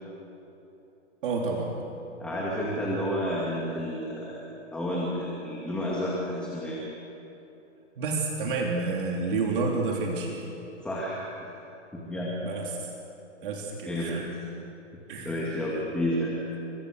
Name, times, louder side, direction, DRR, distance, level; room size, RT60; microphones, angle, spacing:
voice 1, 1.2-1.7 8.0-10.4 12.4-12.9 13.4-14.3 15.1-15.6, right 3 dB, 45° right, -1 dB, 3.6 m, -30 dB
voice 2, 2.2-6.8 10.8-11.5 11.9-12.4 13.8-14.1 15.2-16.3, equal, 5° left, -5 dB, 2.3 m, -31 dB
29.5 x 26.0 x 6.7 m, 3.0 s
hypercardioid pair, 175°, 37 cm